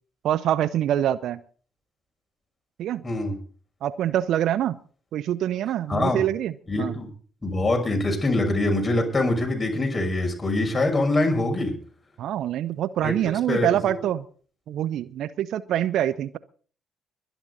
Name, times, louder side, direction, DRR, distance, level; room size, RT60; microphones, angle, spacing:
voice 1, 0.2-1.4 2.8-3.0 3.8-4.8 5.1-6.5 6.8-6.9 12.2-14.3 14.7-16.4, right 11 dB, 60° right, 18 dB, 0.6 m, -25 dB
voice 2, 3.0-3.4 5.9-6.2 6.7-7.1 7.4-11.7 13.0-13.1 13.5-13.7, left 2 dB, 25° left, 2 dB, 6.1 m, -24 dB
22.5 x 10.0 x 4.2 m, 0.43 s
hypercardioid pair, 45°, 0 cm